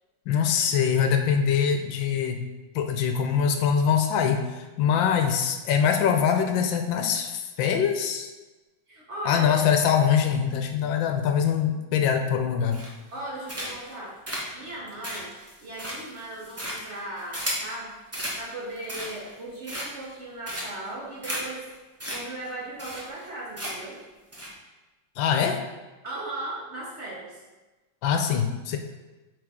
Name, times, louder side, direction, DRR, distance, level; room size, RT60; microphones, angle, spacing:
voice 1, 0.3-2.4 2.7-8.3 9.2-12.8 25.2-25.6 28.0-28.8, left 7 dB, 80° left, 5 dB, 1.3 m, -23 dB
voice 2, 8.9-9.7 13.1-14.2 14.5-15.3 15.6-21.7 22.1-24.0 26.0-27.4, right 2 dB, 45° right, -5 dB, 1.1 m, -37 dB
sound 1, 12.7-13.1 13.5-13.9 14.3-17.7 18.1-18.4 18.8-19.3 19.6-20.1 20.5-20.9 21.2-21.4 21.7-21.8 22.0-22.2 22.4-22.5 22.8-23.3 23.6-23.9 24.3-24.5, equal, 10° right, 0.7 m, -34 dB
8.0 x 3.5 x 3.6 m, 1.2 s
omnidirectional pair, 2.1 m